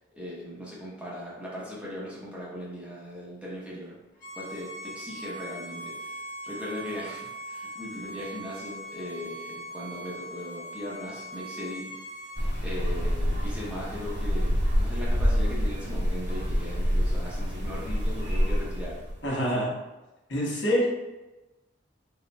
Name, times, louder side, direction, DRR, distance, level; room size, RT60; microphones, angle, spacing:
voice 1, 0.2-3.9 4.4-11.9 12.6-19.0, left 1 dB, 5° right, -6 dB, 0.9 m, -38 dB
Bowed string instrument, 4.2-12.4, right 1 dB, 40° left, 0.8 m, -40 dB
sound 1, 12.4-19.2, equal, 60° right, 1.2 m, -27 dB
voice 2, 19.2-19.7 20.3-20.9, equal, 70° left, -5 dB, 1.3 m, -25 dB
4.2 x 4.1 x 2.3 m, 1.1 s
head